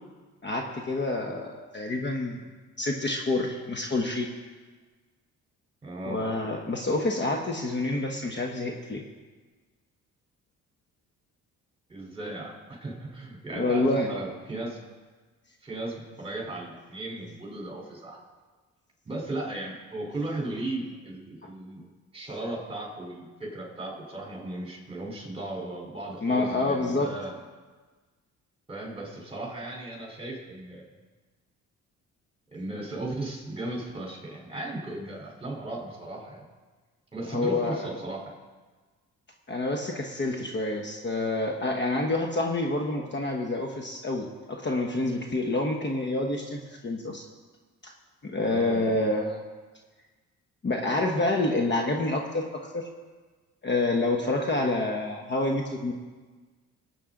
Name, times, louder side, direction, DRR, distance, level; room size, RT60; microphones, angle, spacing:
voice 1, 0.4-2.4 2.8-4.3 6.0-9.0 13.5-14.1 21.4-21.5 26.2-27.1 37.3-37.8 39.5-47.2 47.8-47.9 48.2-49.4 50.6-52.9 53.6-55.9, left 2 dB, 35° left, 2 dB, 1.3 m, -28 dB
voice 2, 5.8-6.2 11.9-14.8 15.6-18.2 19.0-21.9 22.1-27.3 28.7-30.8 32.5-36.4 37.1-38.3 48.5-48.8, right 2 dB, 20° right, -2 dB, 3.9 m, -36 dB
18.5 x 8.6 x 3.8 m, 1.4 s
cardioid pair, 90°, 30 cm